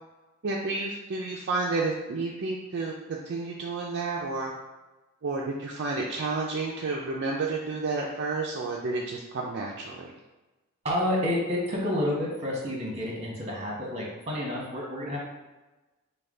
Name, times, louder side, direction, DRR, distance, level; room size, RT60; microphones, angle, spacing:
voice 1, 0.4-4.5 5.2-10.1, right 3 dB, 50° right, -2 dB, 0.5 m, -31 dB
voice 2, 10.8-15.2, left 1 dB, 30° right, -3 dB, 1.3 m, -29 dB
5.4 x 2.3 x 3.8 m, 1.1 s
head